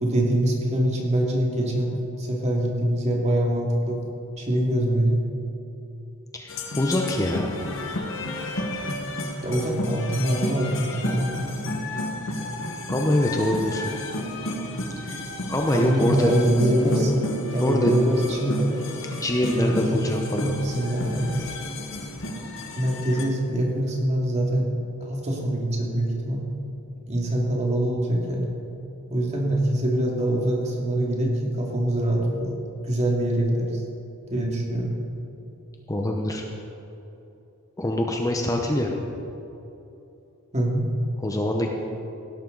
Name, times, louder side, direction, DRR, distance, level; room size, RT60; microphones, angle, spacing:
voice 1, 0.0-4.0 4.4-5.2 9.4-11.3 15.7-17.2 17.5-18.7 19.6-19.8 20.4-21.3 22.7-24.7 25.0-26.4 27.1-28.5 29.1-32.5 32.8-33.8 34.3-34.9 40.5-40.9, right 1 dB, 30° right, -2 dB, 2.4 m, -24 dB
voice 2, 6.3-7.6 12.9-13.9 15.1-15.2 15.5-16.4 16.8-17.0 17.6-17.9 19.2-20.5 35.9-36.4 37.8-38.9 41.2-41.7, left 1 dB, 15° left, 1 dB, 0.8 m, -24 dB
sound 1, 6.5-23.3, left 1 dB, 60° left, 1.5 m, -32 dB
17.5 x 12.0 x 4.0 m, 2.9 s
head